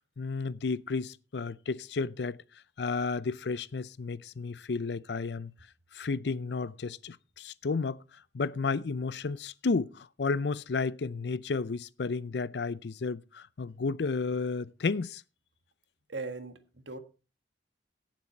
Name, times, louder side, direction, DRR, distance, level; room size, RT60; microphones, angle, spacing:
voice 1, 0.2-2.4 2.8-5.5 5.9-8.0 8.3-15.2, left 4 dB, 70° left, 0.5 m, -32 dB
voice 2, 16.1-17.0, right 3 dB, 85° right, 1.7 m, -39 dB
17.0 x 7.5 x 4.4 m
head